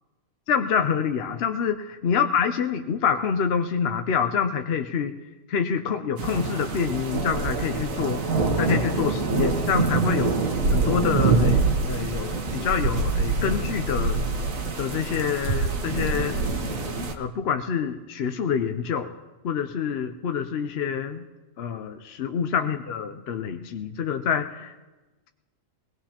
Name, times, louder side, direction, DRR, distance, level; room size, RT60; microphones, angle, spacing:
voice 1, 0.5-1.7 2.0-5.1 5.5-8.2 8.6-10.4 10.7-14.2 14.8-16.4 17.1-19.1 19.4-21.3 21.6-24.8, left 7 dB, 60° left, 7 dB, 0.8 m, -26 dB
sound 1, 6.2-17.1, right 3 dB, 75° right, 1.5 m, -25 dB
22.0 x 18.5 x 2.9 m, 1.1 s
omnidirectional pair, 1.4 m